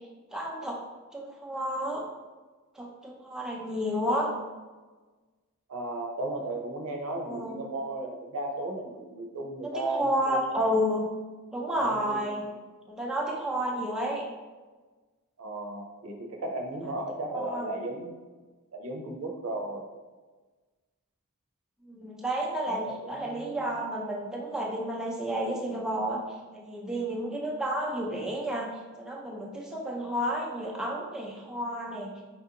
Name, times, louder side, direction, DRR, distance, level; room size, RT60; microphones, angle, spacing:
voice 1, 0.3-0.8 1.1-2.0 2.7-4.3 7.2-7.6 9.6-11.0 11.5-12.5 12.9-14.3 17.3-17.7 21.8-26.2 26.5-28.7 29.0-32.1, equal, 5° right, -3 dB, 0.4 m, -31 dB
voice 2, 5.7-10.8 11.8-12.2 15.4-18.2 18.7-19.9 22.7-23.6, right 2 dB, 85° right, 2 dB, 0.6 m, -35 dB
4.2 x 2.5 x 2.7 m, 1.3 s
head